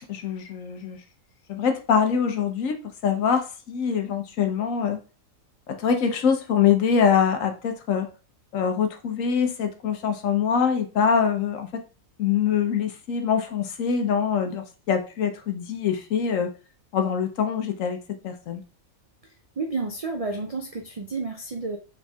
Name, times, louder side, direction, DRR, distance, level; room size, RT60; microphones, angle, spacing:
voice 1, 0.1-1.0 1.5-5.0 5.7-8.1 8.5-11.8 12.2-16.5 16.9-18.0 18.2-18.6, left 7 dB, 70° left, 6 dB, 1.1 m, -24 dB
voice 2, 19.6-21.8, right 3 dB, 75° right, 3 dB, 0.3 m, -30 dB
4.1 x 3.6 x 3.4 m, 0.34 s
omnidirectional pair, 1.5 m